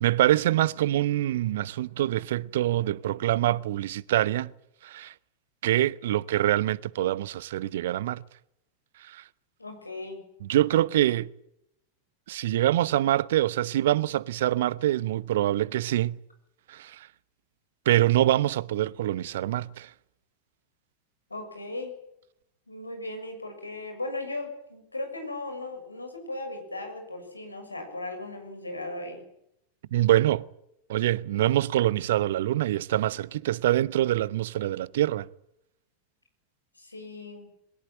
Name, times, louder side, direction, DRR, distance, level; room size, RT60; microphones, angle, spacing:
voice 1, 0.0-4.5 4.8-5.1 5.6-8.2 9.1-9.2 10.4-11.3 12.3-16.2 16.7-17.0 17.9-19.9 29.9-30.5 30.9-35.3, right 13 dB, 55° right, 0.8 m, -25 dB
voice 2, 9.6-10.2 21.3-21.9 22.7-29.2 36.7-37.5, left 2 dB, 80° left, 6.7 m, -37 dB
22.0 x 20.0 x 9.1 m
figure-of-eight pair, 90°, 0 cm